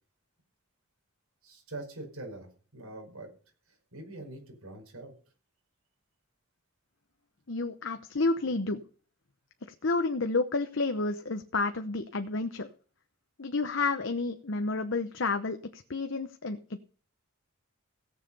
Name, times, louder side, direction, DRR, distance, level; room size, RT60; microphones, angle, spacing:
voice 1, 1.4-3.3 3.7-5.1, right 2 dB, 85° right, 2 dB, 5.4 m, -44 dB
voice 2, 7.5-8.8 9.6-12.7 13.4-16.8, left 3 dB, 60° left, 7 dB, 0.9 m, -30 dB
17.0 x 7.5 x 5.5 m, 0.41 s
head